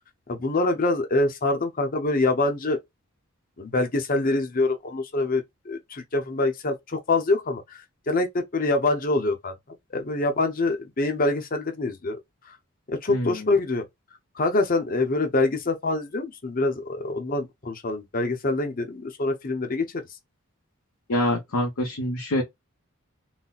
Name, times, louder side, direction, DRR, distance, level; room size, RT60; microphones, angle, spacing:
voice 1, 0.3-2.8 3.6-12.2 12.5-12.6 12.9-13.8 14.3-20.0, left 2 dB, 40° left, 0.7 m, -25 dB
voice 2, 13.1-13.5 21.1-22.4, left 1 dB, 85° left, 0.8 m, -26 dB
4.0 x 2.1 x 2.3 m
head